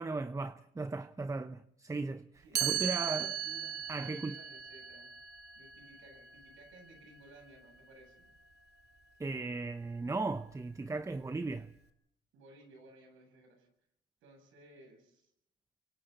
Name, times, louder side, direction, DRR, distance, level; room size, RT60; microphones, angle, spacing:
voice 1, 0.0-3.3 3.9-4.4 9.2-11.7, right 3 dB, 15° right, 0.8 m, -37 dB
Chime, 2.6-8.4, right 10 dB, 55° right, 2.4 m, -38 dB
voice 2, 3.0-5.2 5.5-8.3 12.3-13.7 14.2-15.3, right 2 dB, 90° right, 7.8 m, -57 dB
29.5 x 24.5 x 4.1 m
cardioid pair, 90°, 20 cm